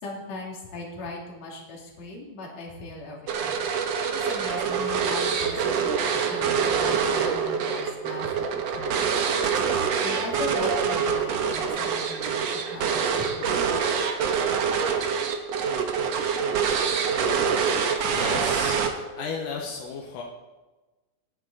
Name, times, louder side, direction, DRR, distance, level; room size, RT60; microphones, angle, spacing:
voice 1, 0.0-3.6 4.1-9.1 10.0-13.7, left 2 dB, 55° left, -2 dB, 3.6 m, -39 dB
sound 1, 3.3-19.2, right 6 dB, 60° right, 2.0 m, -25 dB
voice 2, 18.0-18.8 19.2-20.2, left 5 dB, 80° left, 0 dB, 2.9 m, -33 dB
18.0 x 10.0 x 4.0 m, 1.2 s
omnidirectional pair, 3.7 m